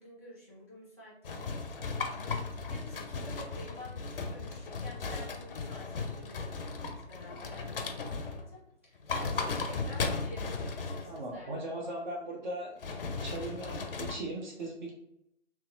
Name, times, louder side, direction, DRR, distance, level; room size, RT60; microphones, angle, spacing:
voice 1, 0.0-11.9, left 1 dB, 15° right, -8 dB, 0.4 m, -50 dB
sound 1, 1.2-8.5 9.0-11.2 12.8-14.2, left 4 dB, 50° left, 0.6 m, -36 dB
voice 2, 11.0-12.8 13.2-14.9, right 1 dB, 40° right, -2 dB, 0.9 m, -38 dB
3.5 x 3.0 x 3.0 m, 0.79 s
figure-of-eight pair, 145°, 35 cm